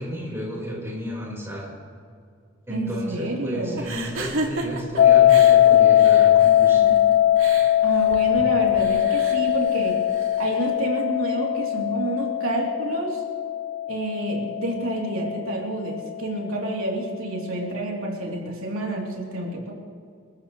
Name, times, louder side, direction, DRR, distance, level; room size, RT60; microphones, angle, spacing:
voice 1, 0.0-1.7 2.7-6.9, equal, 15° right, -5 dB, 5.0 m, -32 dB
voice 2, 2.7-3.8 7.8-10.0 10.4-13.2 13.9-19.7, right 1 dB, 90° right, -2 dB, 3.5 m, -28 dB
sound 1, 3.8-10.6, right 2 dB, 75° right, 2.5 m, -34 dB
sound 2, 5.0-15.9, left 12 dB, 45° left, 0.3 m, -20 dB
28.5 x 13.5 x 3.3 m, 2.2 s
head